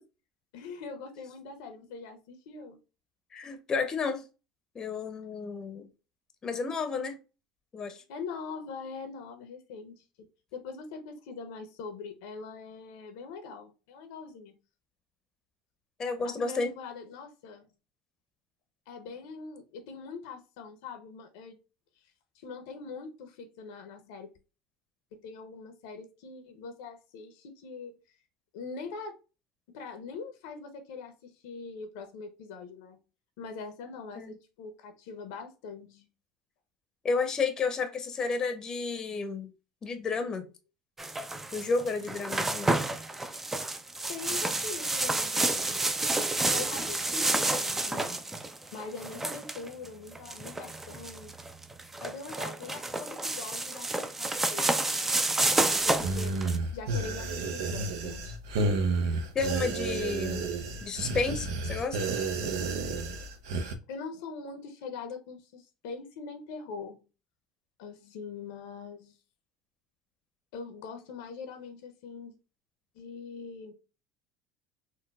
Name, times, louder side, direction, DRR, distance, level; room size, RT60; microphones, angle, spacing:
voice 1, 0.5-2.8 8.1-10.0 10.5-14.5 16.2-17.7 18.9-21.6 22.3-24.3 25.1-28.0 28.5-29.2 29.7-33.0 33.4-36.1 44.1-45.8 46.4-48.4 48.7-51.3 52.0-55.2 55.5-56.4 56.7-58.3 63.9-67.1 67.8-69.2 70.5-72.3 72.9-73.7, left 4 dB, 75° left, 7 dB, 0.6 m, -42 dB
voice 2, 3.3-4.2 4.7-5.9 6.4-7.2 7.7-8.0 16.0-16.7 34.2-34.3 37.0-39.5 39.8-40.5 41.5-42.8 59.3-60.4 60.8-62.0, left 4 dB, 30° left, 7 dB, 0.7 m, -31 dB
sound 1, 41.0-56.6, right 2 dB, 15° right, 0.4 m, -30 dB
sound 2, 56.0-63.7, right 3 dB, 80° right, 0.6 m, -31 dB
3.9 x 2.1 x 2.2 m, 0.31 s
hypercardioid pair, 85°, 2 cm